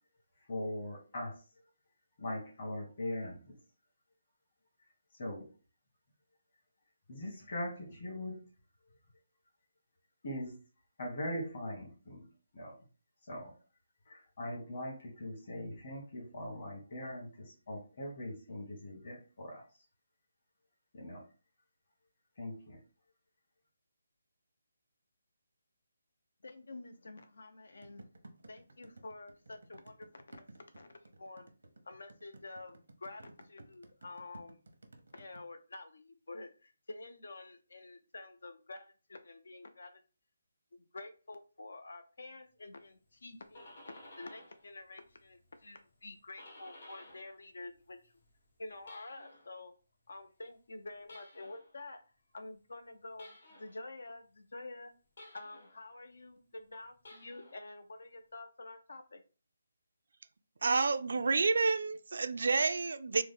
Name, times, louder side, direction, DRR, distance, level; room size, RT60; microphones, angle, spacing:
voice 1, 0.5-1.4 2.2-3.6 5.2-5.5 7.1-8.4 10.2-10.6 11.0-12.3 12.5-12.7 13.3-13.5 14.1-19.7 20.9-21.2 22.4-22.8, left 1 dB, 45° left, 1.5 m, -41 dB
voice 2, 26.4-28.1 28.5-31.5 31.8-34.6 35.1-40.0 40.7-43.7 44.2-48.1 48.6-49.7 50.1-52.0 52.3-54.9 55.3-59.2, left 2 dB, 75° left, 0.4 m, -49 dB
sound 1, 27.8-35.4, right 2 dB, 85° right, 0.7 m, -55 dB
sound 2, 43.2-44.7 45.0-47.4 47.7-49.6 51.0-51.8 53.2-53.8 55.2-55.8 56.9-57.7, left 1 dB, 60° left, 1.2 m, -55 dB
voice 3, 60.6-63.2, right 4 dB, 65° right, 0.3 m, -29 dB
3.5 x 2.0 x 3.5 m
hypercardioid pair, 170°, 0 cm